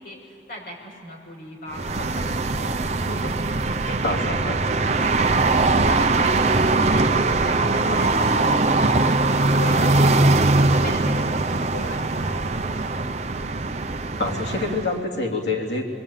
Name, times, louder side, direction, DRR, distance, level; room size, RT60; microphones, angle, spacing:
voice 1, 0.0-2.6 3.0-3.5 3.9-9.2 9.6-13.0, left 1 dB, 50° left, -2 dB, 6.3 m, -38 dB
sound 1, 1.7-15.0, right 2 dB, 40° right, 0.7 m, -21 dB
voice 2, 14.2-15.9, left 3 dB, 80° left, 0 dB, 3.2 m, -26 dB
28.0 x 23.0 x 9.0 m, 2.7 s
head